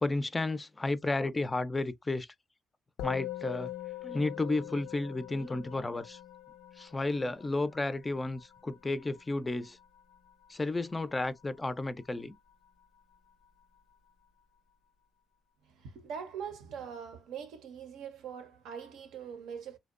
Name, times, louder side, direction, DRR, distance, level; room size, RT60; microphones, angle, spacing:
voice 1, 0.0-2.3 3.0-3.7 4.0-6.2 6.8-9.8 10.5-12.4, left 2 dB, 20° left, 0.3 m, -32 dB
Musical instrument, 3.0-12.5, left 15 dB, 90° left, 0.4 m, -45 dB
voice 2, 15.6-19.8, right 7 dB, 85° right, 0.6 m, -42 dB
2.7 x 2.1 x 2.4 m
cardioid pair, 90°, 0 cm